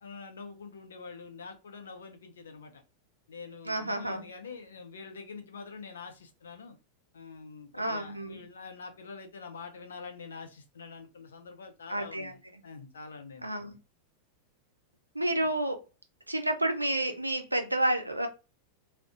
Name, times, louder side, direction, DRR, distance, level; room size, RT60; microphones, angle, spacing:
voice 1, 0.0-2.8 3.3-6.8 7.1-13.8, left 4 dB, 65° left, 5 dB, 0.5 m, -45 dB
voice 2, 3.7-4.2 7.7-8.4 11.9-12.3 13.4-13.8 15.1-15.8 16.3-18.3, right 1 dB, 85° right, 6 dB, 0.4 m, -30 dB
2.4 x 2.0 x 2.5 m, 0.29 s
figure-of-eight pair, 90°, 0 cm